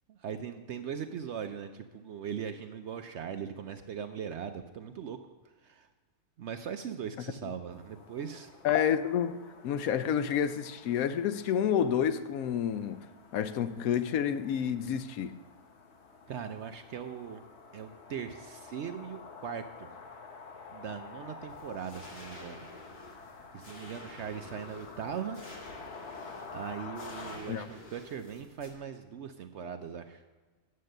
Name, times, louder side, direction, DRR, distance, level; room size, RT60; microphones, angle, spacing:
voice 1, 0.1-5.2 5.6-5.9 6.4-8.5 16.3-17.4 17.7-19.9 20.7-22.6 23.5-25.4 26.5-30.2, right 7 dB, 65° right, 0.7 m, -40 dB
sound 1, 7.7-27.4, left 4 dB, 50° left, 1.1 m, -49 dB
voice 2, 8.6-13.1 13.3-15.4 27.5-27.7, left 8 dB, 75° left, 1.0 m, -29 dB
sound 2, 21.5-28.7, left 1 dB, 35° left, 2.0 m, -51 dB
9.5 x 7.6 x 6.5 m
omnidirectional pair, 1.6 m